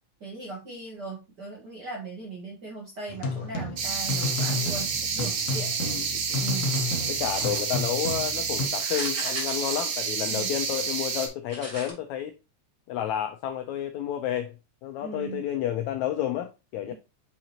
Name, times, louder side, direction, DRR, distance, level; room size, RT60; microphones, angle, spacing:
voice 1, 0.2-5.7 6.4-6.8 10.3-10.5 15.0-15.4 16.9-17.0, right 3 dB, 50° right, 1.3 m, -38 dB
sound 1, 3.1-8.7, left 2 dB, 60° left, 1.7 m, -32 dB
Cicadas (wide), 3.8-11.3, right 6 dB, 85° right, 2.7 m, -29 dB
voice 2, 5.8-6.5 7.1-12.3 12.9-14.6 14.8-16.9, left 11 dB, 80° left, 1.6 m, -31 dB
sound 2, 7.3-7.9 8.7-10.5 11.5-11.9, right 1 dB, 15° right, 1.2 m, -39 dB
5.8 x 5.8 x 2.8 m
omnidirectional pair, 3.8 m